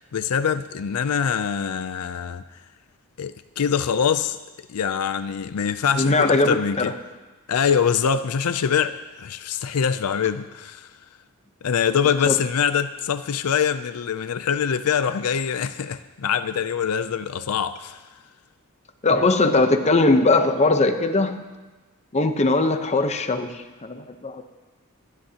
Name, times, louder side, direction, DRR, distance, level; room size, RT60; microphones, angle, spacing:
voice 1, 0.1-2.4 3.2-4.4 4.7-6.9 7.5-10.9 11.6-18.0, left 7 dB, 85° left, 12 dB, 0.4 m, -24 dB
voice 2, 5.9-6.9 12.2-12.4 19.0-21.3 22.1-24.4, left 2 dB, 30° left, 7 dB, 0.8 m, -20 dB
27.0 x 10.5 x 2.9 m, 1.2 s
head